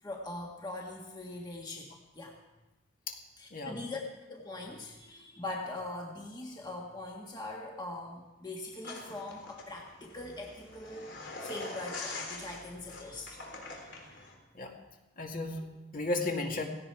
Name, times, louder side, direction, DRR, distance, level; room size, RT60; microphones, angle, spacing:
voice 1, 0.0-2.4 3.4-4.0 4.3-11.1 11.4-14.3, left 2 dB, 20° left, -1 dB, 1.6 m, -42 dB
sound 1, 8.8-14.3, left 3 dB, 65° left, 3.7 m, -44 dB
voice 2, 15.2-16.6, left 2 dB, 45° left, 1 dB, 2.2 m, -34 dB
17.5 x 16.5 x 4.7 m, 1.1 s
head